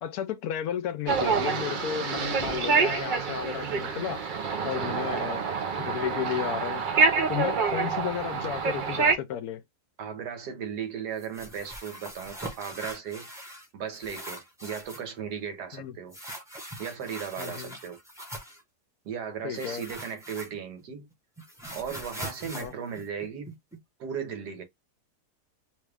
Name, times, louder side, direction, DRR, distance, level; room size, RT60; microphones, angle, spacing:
voice 1, 0.0-4.2 4.6-5.4 5.8-6.9 7.3-9.6 15.7-16.0 17.4-17.8 19.4-19.8 22.5-22.7, left 9 dB, 75° left, 1.0 m, -33 dB
sound 1, 1.1-9.1, right 5 dB, 65° right, 0.5 m, -27 dB
voice 2, 10.0-13.3 13.7-16.2 16.8-18.0 19.0-21.1 21.7-23.5 24.0-24.6, right 7 dB, 85° right, 1.5 m, -36 dB
sound 2, 11.2-13.7 13.9-15.1 16.1-18.6 19.5-20.8 21.1-23.8, right 1 dB, 5° right, 0.7 m, -42 dB
3.2 x 2.3 x 3.3 m
omnidirectional pair, 1.7 m